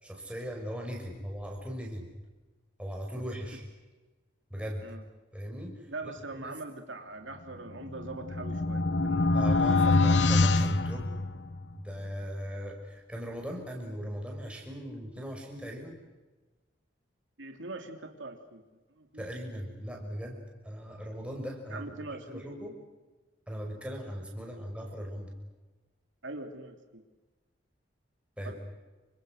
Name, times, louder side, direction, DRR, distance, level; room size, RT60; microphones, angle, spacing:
voice 1, 0.0-2.1 2.8-3.6 4.5-4.8 5.3-6.6 9.3-11.1 11.7-16.0 19.2-21.8 22.3-22.7 23.5-25.3 28.4-28.5, equal, 5° right, 0 dB, 6.1 m, -39 dB
voice 2, 5.9-9.3 17.4-18.6 19.0-19.3 21.7-22.5 26.2-27.0 28.4-28.5, right 2 dB, 85° right, 4 dB, 3.0 m, -42 dB
sound 1, 7.7-11.7, left 3 dB, 70° left, 1.1 m, -25 dB
29.0 x 26.0 x 6.5 m, 1.2 s
head